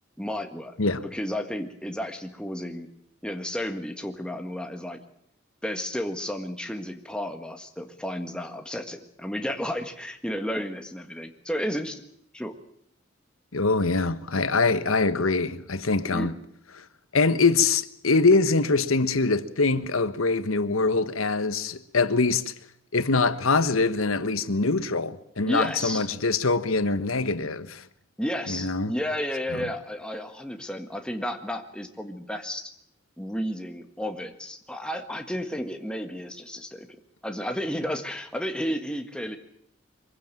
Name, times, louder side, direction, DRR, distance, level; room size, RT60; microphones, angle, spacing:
voice 1, 0.2-0.7 1.0-2.9 3.2-5.0 5.6-12.0 12.3-12.5 16.1-16.4 25.4-26.1 28.2-32.7 33.2-36.9 37.2-39.4, equal, 5° left, 1.7 m, -32 dB
voice 2, 13.5-16.3 17.1-22.4 22.9-27.8 28.5-28.9 29.5-29.7, left 3 dB, 90° left, 1.3 m, -23 dB
23.5 x 15.5 x 9.0 m
head